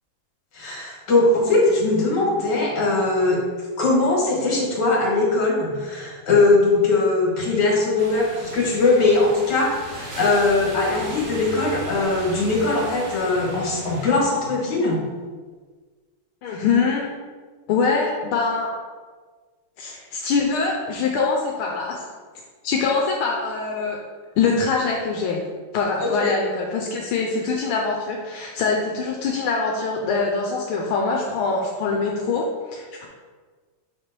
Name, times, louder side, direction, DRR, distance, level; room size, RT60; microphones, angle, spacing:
voice 1, 0.5-3.4 3.8-15.1 26.0-26.4, left 3 dB, 55° left, -3 dB, 2.1 m, -20 dB
sound 1, 8.0-14.1, right 1 dB, 45° right, 1.1 m, -36 dB
voice 2, 16.4-17.1 17.7-18.7 19.8-22.0 22.6-24.0 24.4-25.4 25.7-33.1, left 4 dB, 85° left, -1 dB, 1.5 m, -23 dB
6.6 x 3.3 x 4.4 m, 1.4 s
omnidirectional pair, 2.3 m